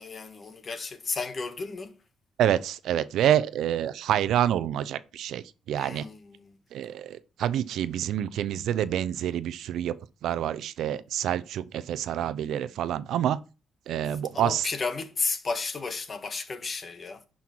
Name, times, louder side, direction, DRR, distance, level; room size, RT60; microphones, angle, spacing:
voice 1, 0.0-2.0 5.8-6.6 14.3-17.2, left 4 dB, 40° left, 1.7 m, -33 dB
voice 2, 2.4-6.1 6.7-9.9 10.2-13.4 13.9-14.7, right 10 dB, 80° right, 0.6 m, -27 dB
10.5 x 5.6 x 4.6 m
cardioid pair, 90°, 0 cm